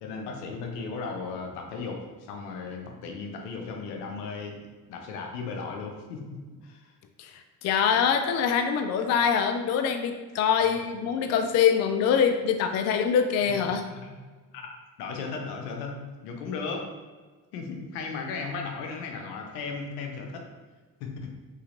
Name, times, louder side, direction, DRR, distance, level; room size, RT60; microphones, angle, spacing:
voice 1, 0.0-6.9 10.6-10.8 14.0-14.1 14.5-14.7 15.0-16.0 16.2-16.9 17.5-20.5 21.0-21.3, left 4 dB, 70° left, 2 dB, 0.8 m, -36 dB
voice 2, 7.2-13.9, left 7 dB, 35° left, 7 dB, 0.4 m, -24 dB
5.6 x 3.2 x 2.6 m, 1.4 s
figure-of-eight pair, 45°, 48 cm